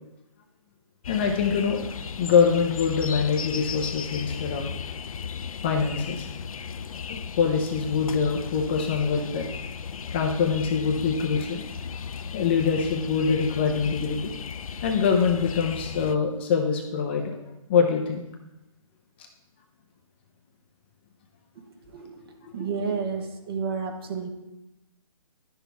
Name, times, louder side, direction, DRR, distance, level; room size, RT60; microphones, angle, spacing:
sound 1, 1.0-16.2, left 6 dB, 80° left, 0.5 m, -36 dB
voice 1, 1.1-1.8 2.2-4.6 5.6-6.3 7.1-9.5 10.1-11.6 11.9-12.0 12.3-14.3 14.8-17.3 17.7-18.2 22.5-22.6, left 6 dB, 20° left, 2 dB, 0.5 m, -24 dB
voice 2, 21.9-24.3, right 5 dB, 45° right, 5 dB, 1.1 m, -31 dB
11.0 x 6.0 x 3.4 m, 0.96 s
hypercardioid pair, 160°, 18 cm